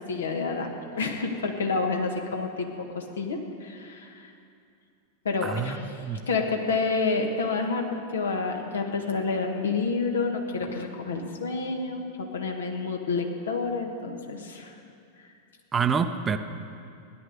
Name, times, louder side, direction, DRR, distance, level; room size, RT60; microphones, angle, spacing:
voice 1, 0.1-0.7 1.0-4.3 5.3-5.8 6.3-7.9 8.1-14.8, left 4 dB, 65° left, 3 dB, 1.6 m, -29 dB
voice 2, 5.4-6.3 15.7-16.4, right 6 dB, 20° right, 9 dB, 0.7 m, -27 dB
16.0 x 11.0 x 6.7 m, 2.5 s
figure-of-eight pair, 90°, 0 cm